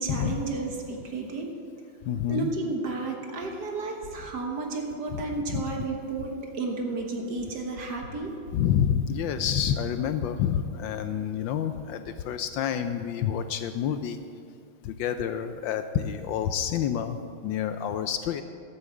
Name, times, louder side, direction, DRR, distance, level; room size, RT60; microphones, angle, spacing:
voice 1, 0.0-1.6 2.3-8.4, right 3 dB, 55° right, 2 dB, 1.7 m, -32 dB
voice 2, 2.0-2.5 5.1-5.2 5.5-5.6 8.5-14.2 14.8-18.4, left 9 dB, 75° left, 9 dB, 1.2 m, -28 dB
13.0 x 7.2 x 7.7 m, 2.4 s
omnidirectional pair, 2.3 m